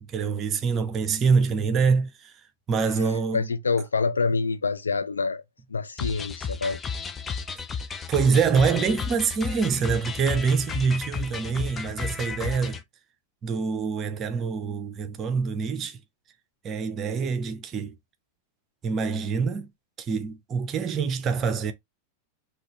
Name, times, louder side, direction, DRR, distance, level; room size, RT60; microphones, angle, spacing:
voice 1, 0.1-2.3 2.7-3.4 8.1-12.8 13.4-16.0 16.6-17.9 18.8-19.7 20.0-21.7, right 5 dB, 30° right, 0.6 m, -25 dB
voice 2, 3.3-5.4 5.7-6.8, left 4 dB, 75° left, 0.5 m, -26 dB
sound 1, 6.0-12.8, left 5 dB, 20° left, 0.4 m, -33 dB
4.0 x 2.4 x 2.9 m
figure-of-eight pair, 90°, 0 cm